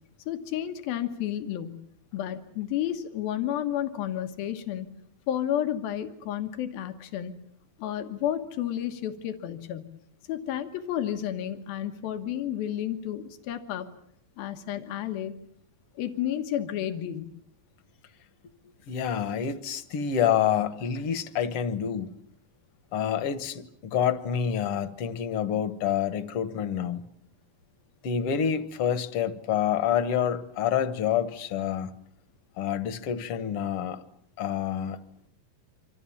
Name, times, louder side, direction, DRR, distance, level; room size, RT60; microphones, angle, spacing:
voice 1, 0.3-1.8 2.1-4.9 5.3-7.3 7.8-9.9 10.3-13.9 14.4-15.3 16.0-17.4, left 11 dB, 85° left, 7 dB, 3.3 m, -31 dB
voice 2, 18.9-22.1 22.9-27.1 28.0-31.9 32.6-34.0 34.4-35.0, left 8 dB, 55° left, 13 dB, 1.7 m, -27 dB
28.0 x 25.5 x 7.3 m, 0.66 s
omnidirectional pair, 4.1 m